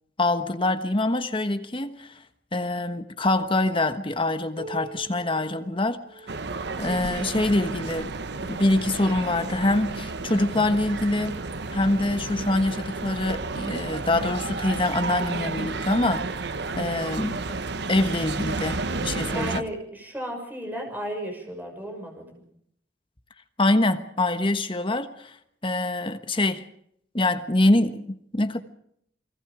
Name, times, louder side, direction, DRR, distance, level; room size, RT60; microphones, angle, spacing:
voice 1, 0.2-2.2 2.5-6.0 6.8-8.1 8.5-11.4 11.7-16.5 16.8-17.4 17.9-19.6 23.6-25.3 25.6-26.6 27.1-28.6, left 2 dB, 30° left, 1.3 m, -25 dB
Piano, 4.6-9.9 10.7-10.8 11.3-11.4 12.2-12.3 13.3-13.4, right 3 dB, 85° right, 2.3 m, -46 dB
sound 1, 6.3-19.6, right 3 dB, 65° right, 1.0 m, -32 dB
voice 2, 19.3-22.4, right 1 dB, 10° right, 6.1 m, -34 dB
29.0 x 20.5 x 5.0 m
head